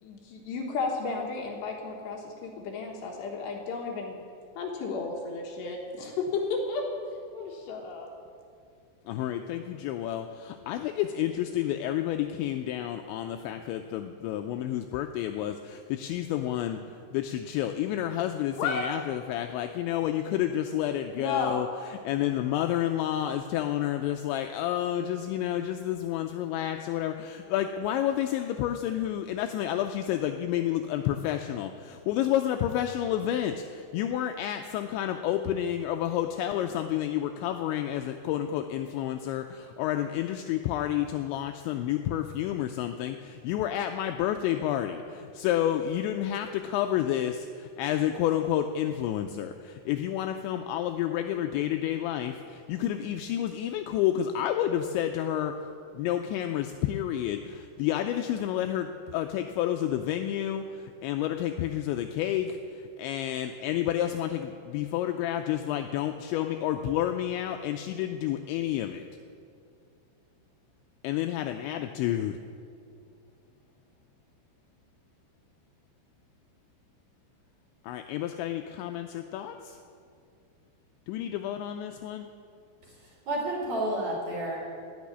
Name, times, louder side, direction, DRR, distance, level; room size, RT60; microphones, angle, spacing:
voice 1, 0.0-4.2 4.6-6.8 7.3-8.1 18.5-18.9 21.1-21.6, left 4 dB, 70° left, 0 dB, 3.1 m, -33 dB
voice 2, 9.1-55.7 55.9-69.1 71.0-72.4 77.8-79.8 81.1-82.3, left 11 dB, 85° left, 6 dB, 2.6 m, -30 dB
voice 3, 82.8-84.6, right 1 dB, 45° right, -4 dB, 3.1 m, -31 dB
18.0 x 6.4 x 9.6 m, 2.4 s
omnidirectional pair, 5.8 m